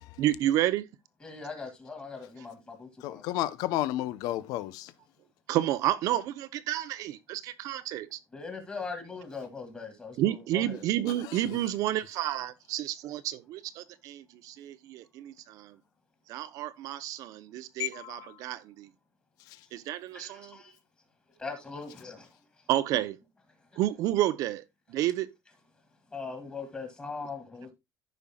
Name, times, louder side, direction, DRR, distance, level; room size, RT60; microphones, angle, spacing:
voice 1, 0.2-0.9 5.5-8.2 10.2-15.7 16.3-18.9 19.7-20.6 22.7-23.2 23.8-24.6 24.9-25.3, right 13 dB, 60° right, 0.7 m, -30 dB
voice 2, 1.2-3.2 8.3-10.9 20.1-20.8 21.4-22.3 26.1-27.7, left 4 dB, 20° left, 2.4 m, -40 dB
voice 3, 3.0-4.9 11.1-11.6 17.8-18.3, left 14 dB, 75° left, 0.7 m, -32 dB
14.5 x 5.5 x 2.3 m
cardioid pair, 155°, 6 cm